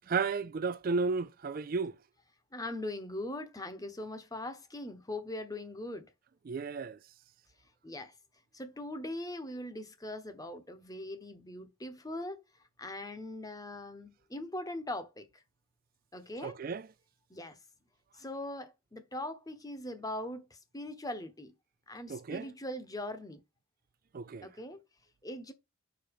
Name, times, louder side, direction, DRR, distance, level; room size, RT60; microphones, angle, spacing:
voice 1, 0.1-1.9 6.5-7.0 16.4-16.8 22.1-22.5 24.1-24.5, right 4 dB, 45° right, 0.4 m, -33 dB
voice 2, 2.5-6.1 7.8-8.1 8.5-12.4 12.8-15.4 16.1-16.6 17.3-17.6 18.2-21.5 21.9-23.4 24.4-24.8 25.2-25.5, left 1 dB, 15° left, 1.1 m, -41 dB
5.5 x 5.0 x 5.3 m
head